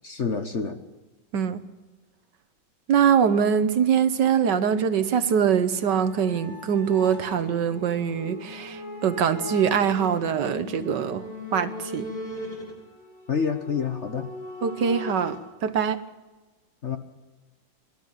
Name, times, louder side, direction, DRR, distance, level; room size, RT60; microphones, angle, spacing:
voice 1, 0.0-0.8 13.3-14.3 16.8-17.0, left 6 dB, 40° left, 1.2 m, -27 dB
voice 2, 2.9-11.2 11.5-12.1 14.6-15.4 15.6-16.0, right 7 dB, 65° right, 1.5 m, -23 dB
sound 1, 4.7-15.4, left 1 dB, 70° left, 4.7 m, -39 dB
24.5 x 12.0 x 9.0 m
omnidirectional pair, 2.1 m